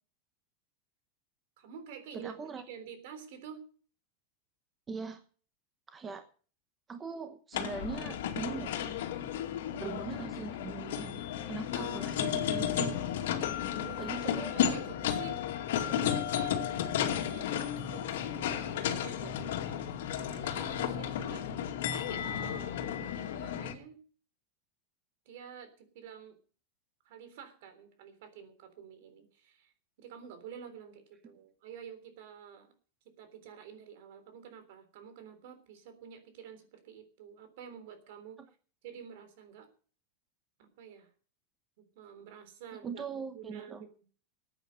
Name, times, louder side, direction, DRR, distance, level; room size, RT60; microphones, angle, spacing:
voice 1, 1.6-3.6 13.7-15.4 15.7-19.8 20.1-21.5 22.1-24.0 25.3-26.4 27.0-29.7 30.0-32.7 33.2-38.4 38.8-39.7 40.8-41.1 42.0-43.0 43.3-43.9, right 7 dB, 65° right, 9 dB, 3.5 m, -49 dB
voice 2, 2.1-2.6 4.9-5.2 5.9-6.2 6.9-8.9 9.8-13.0 14.0-14.5 42.8-43.9, right 5 dB, 15° right, 8 dB, 1.0 m, -41 dB
sound 1, 7.5-23.7, left 9 dB, 80° left, 2.3 m, -33 dB
15.0 x 8.9 x 6.5 m, 0.41 s
supercardioid pair, 155°, 0 cm